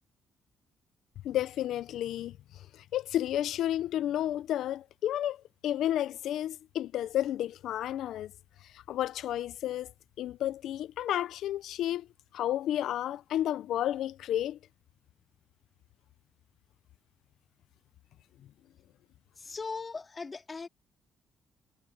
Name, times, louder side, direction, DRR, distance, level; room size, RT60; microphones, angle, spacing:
voice 1, 1.2-8.3 8.6-9.9 10.2-12.1 12.3-14.6, left 12 dB, 80° left, 0.5 m, -32 dB
voice 2, 19.4-20.7, left 4 dB, 30° left, 3.3 m, -39 dB
cardioid pair, 90°, 0 cm